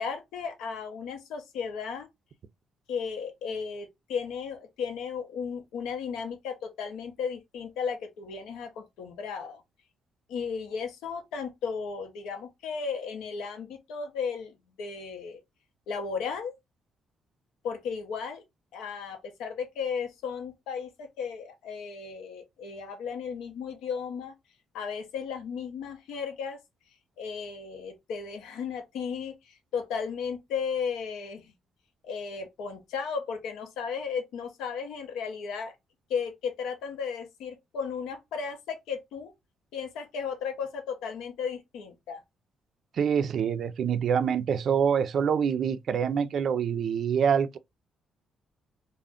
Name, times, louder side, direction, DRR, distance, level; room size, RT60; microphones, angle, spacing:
voice 1, 0.0-2.1 2.9-9.6 10.3-15.4 15.9-16.5 17.6-18.4 18.7-24.3 24.7-26.6 27.2-31.5 32.0-35.8 36.1-39.3 39.7-42.2, left 6 dB, 90° left, 0.6 m, -35 dB
voice 2, 43.0-47.6, right 7 dB, 60° right, 0.3 m, -26 dB
2.5 x 2.0 x 3.4 m
cardioid pair, 90°, 0 cm